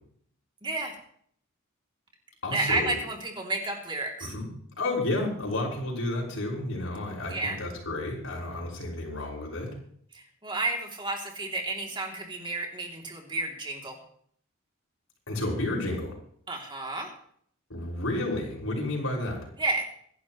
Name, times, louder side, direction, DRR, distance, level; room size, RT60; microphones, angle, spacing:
voice 1, 0.6-0.9 2.5-4.3 7.3-7.6 10.1-14.0 16.5-17.1 19.6-19.8, right 2 dB, 25° right, 1 dB, 2.9 m, -31 dB
voice 2, 2.4-2.9 4.2-4.5 4.8-9.7 15.3-16.2 17.7-19.4, left 2 dB, 85° left, -1 dB, 5.8 m, -31 dB
26.0 x 11.0 x 3.1 m, 0.62 s
head